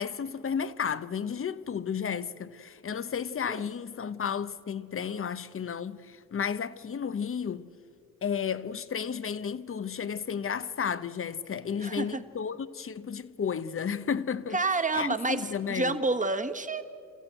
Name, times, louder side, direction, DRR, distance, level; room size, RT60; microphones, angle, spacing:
voice 1, 0.0-7.7 8.2-14.6 14.9-16.0, left 7 dB, 40° left, 0.9 m, -33 dB
voice 2, 14.5-15.4 15.7-16.8, right 3 dB, 25° right, 1.5 m, -28 dB
28.5 x 14.5 x 7.9 m
cardioid pair, 65°, 32 cm